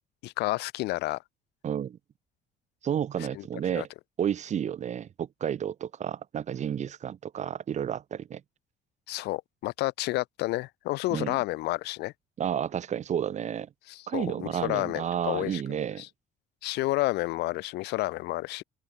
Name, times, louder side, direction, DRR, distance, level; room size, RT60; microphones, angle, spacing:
voice 1, 0.2-1.2 3.3-3.4 3.7-3.9 9.1-12.1 13.9-15.6 16.0-16.1 16.6-18.6, left 19 dB, 80° left, 0.5 m, -30 dB
voice 2, 1.6-2.0 2.8-3.9 4.2-8.4 11.1-11.4 12.4-13.7 14.1-16.0, right 9 dB, 45° right, 1.0 m, -31 dB
open air
cardioid pair, 110°, 17 cm